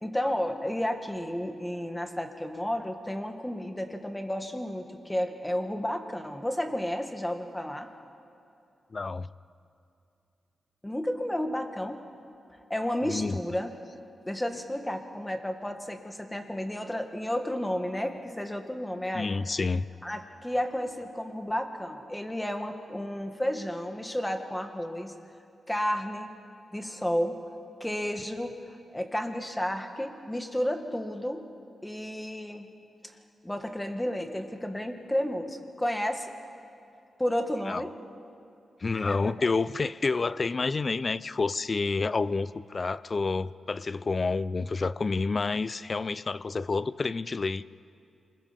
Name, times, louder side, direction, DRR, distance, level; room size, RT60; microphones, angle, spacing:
voice 1, 0.0-7.9 10.8-12.0 12.5-13.7 14.3-19.3 20.0-25.1 25.7-26.3 26.7-27.4 27.8-28.5 28.9-31.5 31.8-32.7 33.4-36.3 37.2-37.9 38.9-39.5, equal, 10° left, 2.0 m, -32 dB
voice 2, 8.9-9.3 13.0-13.4 19.1-19.8 37.7-37.8 38.8-47.6, left 4 dB, 40° left, 0.5 m, -29 dB
27.5 x 21.0 x 5.4 m
cardioid pair, 75°, 0 cm